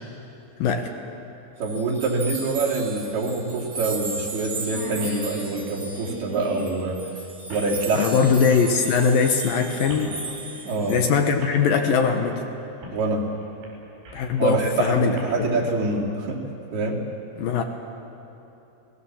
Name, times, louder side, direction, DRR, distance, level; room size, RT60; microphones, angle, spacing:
sound 1, 0.9-1.0 2.7-2.8 3.2-3.3 3.8-4.0 4.3-4.4 4.6-6.8 7.5-7.7 8.6-8.9 9.9-10.1 10.9-11.0 11.4-11.6 12.8-13.0 13.4-14.4 15.0-15.2, right 2 dB, 85° right, 7.7 m, -40 dB
sound 2, 1.6-11.1, right 3 dB, 40° right, 2.6 m, -36 dB
voice 1, 1.6-7.0 7.5-8.1 10.6-11.0 12.9-13.2 14.4-16.4 16.7-17.0, right 3 dB, 70° right, -2 dB, 4.5 m, -25 dB
voice 2, 7.9-10.2 10.9-12.4 14.1-15.6 17.4-17.6, left 5 dB, 70° left, 4 dB, 2.5 m, -21 dB
30.0 x 19.0 x 7.2 m, 2.9 s
omnidirectional pair, 4.8 m